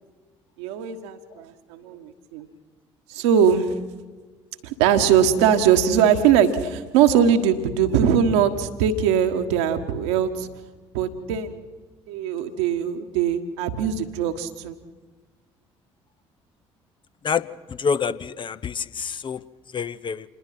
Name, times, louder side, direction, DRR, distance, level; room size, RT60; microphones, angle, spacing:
voice 1, 0.6-2.5 3.1-3.7 4.6-10.5 10.9-11.6 12.1-14.8, right 8 dB, 65° right, 7 dB, 1.6 m, -21 dB
voice 2, 17.8-19.4 19.7-20.2, left 6 dB, 35° left, 14 dB, 0.7 m, -26 dB
27.5 x 21.0 x 6.0 m, 1.3 s
figure-of-eight pair, 50°, 15 cm